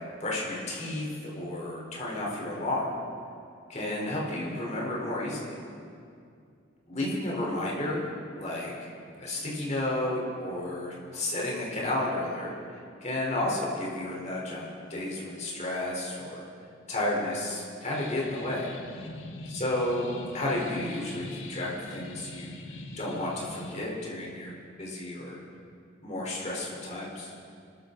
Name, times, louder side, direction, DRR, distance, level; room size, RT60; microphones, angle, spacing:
voice 1, 0.2-2.9 3.7-5.5 6.9-8.1 8.4-8.9 9.2-16.5 16.9-18.7 19.5-20.0 20.3-22.5 23.0-24.5 24.8-25.4 26.0-27.3, left 1 dB, 35° left, -3 dB, 4.1 m, -32 dB
sound 1, 17.9-23.7, left 2 dB, 85° left, 1.6 m, -42 dB
25.5 x 13.5 x 4.0 m, 2.4 s
head